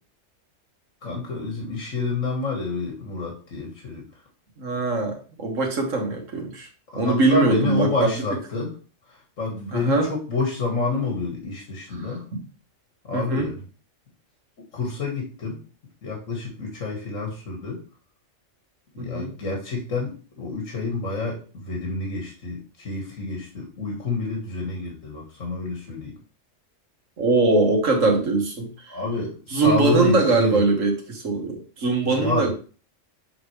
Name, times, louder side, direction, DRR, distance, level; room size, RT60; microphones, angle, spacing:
voice 1, 1.0-4.0 6.9-8.7 9.1-12.2 13.1-13.6 14.7-15.6 16.0-17.8 18.9-26.2 28.9-30.6 32.1-32.5, left 3 dB, 75° left, 0 dB, 2.0 m, -28 dB
voice 2, 4.6-6.7 7.0-7.9 9.7-10.1 12.0-12.5 13.1-13.5 19.0-19.3 27.2-28.7 29.5-32.5, right 3 dB, 80° right, 1 dB, 1.9 m, -22 dB
7.5 x 4.0 x 3.2 m, 0.36 s
omnidirectional pair, 1.3 m